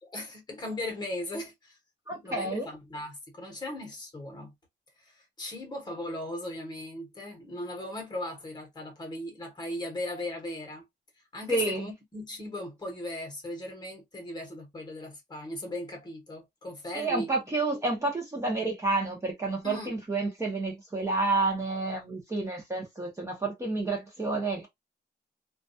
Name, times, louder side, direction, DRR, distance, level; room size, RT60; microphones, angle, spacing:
voice 1, 0.0-1.8 2.1-4.5 5.0-10.9 11.3-17.3 19.6-19.9, left 1 dB, 25° left, 0.9 m, -38 dB
voice 2, 2.1-2.7 11.5-11.9 16.9-24.7, right 3 dB, 15° right, 0.7 m, -30 dB
2.2 x 2.2 x 2.6 m
wide cardioid pair, 180°, 18 cm